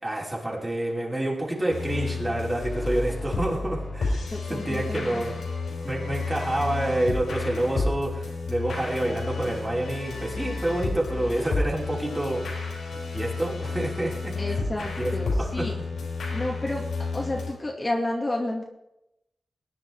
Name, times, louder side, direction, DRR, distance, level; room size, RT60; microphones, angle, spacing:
voice 1, 0.0-5.4 5.8-12.4 13.1-14.6 15.0-15.1 15.4-15.7, right 1 dB, 20° right, -4 dB, 5.4 m, -28 dB
sound 1, 1.7-17.5, left 3 dB, 85° left, 4.6 m, -31 dB
voice 2, 4.3-5.2 14.4-15.8 16.3-16.8 17.1-18.6, left 1 dB, 25° left, -1 dB, 2.4 m, -30 dB
19.5 x 10.5 x 4.8 m, 0.86 s
cardioid pair, 70°, 0 cm